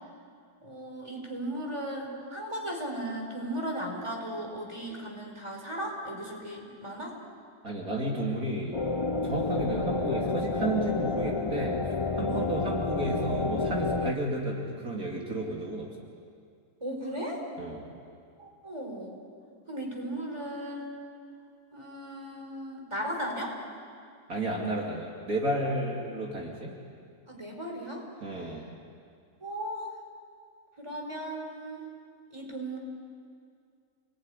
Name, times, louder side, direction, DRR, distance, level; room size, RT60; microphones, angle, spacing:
voice 1, 0.6-7.2 12.3-12.5 16.8-17.4 18.4-19.2 19.7-21.0 21.7-23.6 27.3-28.1 29.4-29.9 30.8-31.9 32.3-32.8, right 1 dB, 20° right, 1 dB, 4.9 m, -36 dB
voice 2, 7.6-8.8 9.2-11.8 12.1-15.9 17.6-17.8 24.3-26.7 28.2-28.7, right 1 dB, 65° right, -2 dB, 3.3 m, -32 dB
sound 1, 8.7-14.1, left 3 dB, 30° left, 0.5 m, -30 dB
29.0 x 20.5 x 9.9 m, 2.3 s
omnidirectional pair, 1.6 m